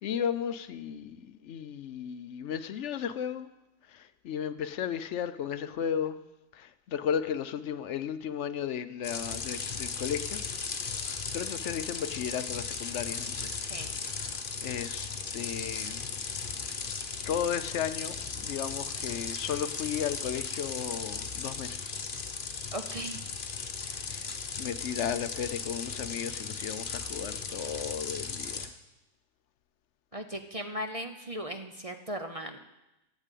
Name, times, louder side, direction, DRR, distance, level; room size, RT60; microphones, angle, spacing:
voice 1, 0.0-3.5 3.9-6.2 6.5-10.4 11.3-13.5 14.2-16.1 17.3-22.0 23.8-28.7, left 8 dB, 70° left, 0.9 m, -35 dB
sound 1, 9.0-28.7, left 5 dB, 45° left, 1.1 m, -36 dB
voice 2, 22.7-23.2 30.1-32.6, equal, 35° right, 0.7 m, -37 dB
12.5 x 8.3 x 8.3 m
omnidirectional pair, 1.3 m